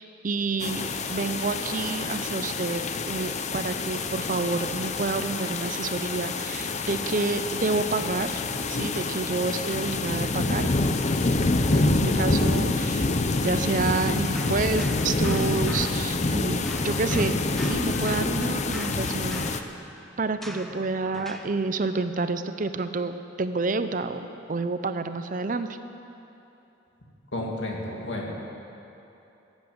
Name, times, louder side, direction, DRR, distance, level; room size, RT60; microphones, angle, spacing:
voice 1, 0.2-8.4 8.7-10.7 11.4-13.1 13.4-17.4 17.7-19.6 20.2-25.8, right 3 dB, 45° right, 10 dB, 0.6 m, -29 dB
sound 1, 0.6-19.6, left 3 dB, 40° left, 0.6 m, -27 dB
sound 2, 14.3-16.4 16.7-21.6, equal, ahead, 0.7 m, -42 dB
voice 2, 27.3-28.5, left 1 dB, 75° left, -1 dB, 2.3 m, -32 dB
15.5 x 8.3 x 8.0 m, 2.9 s
head